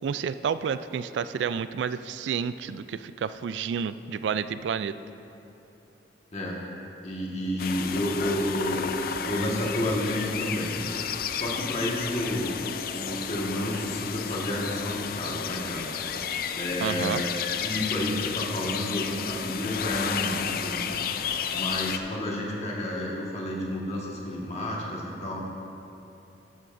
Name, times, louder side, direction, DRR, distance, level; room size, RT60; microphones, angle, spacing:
voice 1, 0.0-4.9 16.8-17.2, right 7 dB, 85° right, 13 dB, 0.3 m, -30 dB
voice 2, 6.3-6.6 7.0-10.8 11.3-12.6 12.9-16.1 16.5-17.3 17.6-20.9 21.5-25.4, left 1 dB, 40° left, -3 dB, 1.6 m, -30 dB
sound 1, 7.6-22.0, left 7 dB, 55° left, 0.4 m, -32 dB
12.5 x 11.0 x 2.6 m, 2.9 s
head